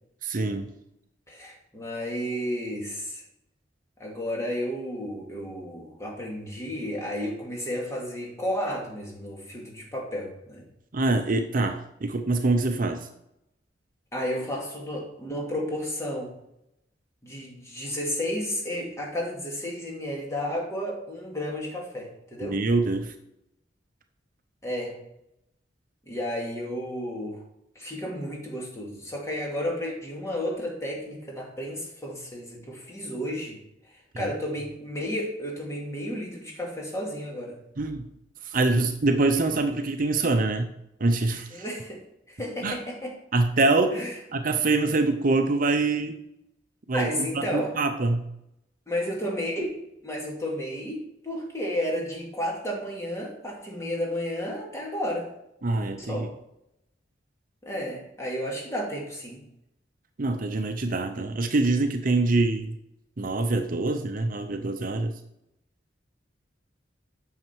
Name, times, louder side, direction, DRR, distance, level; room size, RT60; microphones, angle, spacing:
voice 1, 0.2-0.7 10.9-13.1 22.4-23.1 34.2-34.3 37.8-38.1 38.5-40.7 41.0-41.6 42.6-42.8 43.3-44.0 44.3-46.1 46.9-48.3 55.6-56.3 60.2-62.8 63.2-65.1, right 2 dB, 50° right, 7 dB, 0.7 m, -25 dB
voice 2, 1.3-3.2 4.0-10.6 14.1-16.3 17.2-22.6 24.6-25.0 26.1-27.4 27.8-33.6 34.2-37.6 41.5-42.0 42.3-43.2 43.9-44.1 46.9-47.7 48.9-49.8 50.0-55.3 56.0-56.3 57.6-59.5, equal, 15° left, -2 dB, 2.6 m, -32 dB
9.1 x 6.5 x 4.6 m, 0.80 s
head